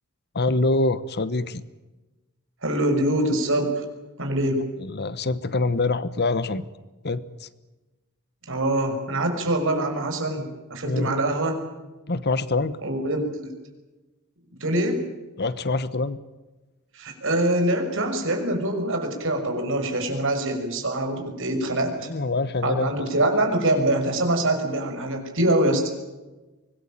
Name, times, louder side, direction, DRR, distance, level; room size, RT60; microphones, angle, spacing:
voice 1, 0.3-1.6 4.8-6.6 7.0-7.5 10.8-11.1 12.1-12.8 15.4-16.2 22.0-22.9, left 3 dB, 50° left, 15 dB, 1.2 m, -25 dB
voice 2, 2.6-3.8 4.2-4.6 8.5-10.4 10.7-11.6 12.8-13.5 14.6-15.0 16.9-22.1 22.6-25.9, right 1 dB, 60° right, 5 dB, 6.0 m, -24 dB
25.0 x 20.5 x 8.9 m, 1.1 s
head